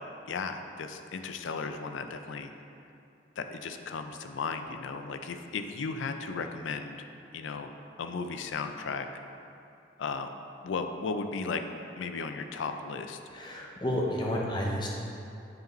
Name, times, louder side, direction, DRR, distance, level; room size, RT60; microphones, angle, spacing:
voice 1, 0.3-2.5 3.4-7.0 7.3-7.7 8.0-9.1 10.0-10.3 10.6-11.6 12.0-13.2, left 4 dB, 80° left, 7 dB, 0.4 m, -35 dB
voice 2, 13.3-14.9, left 1 dB, 25° left, -2 dB, 0.7 m, -31 dB
7.5 x 5.0 x 3.1 m, 2.6 s
head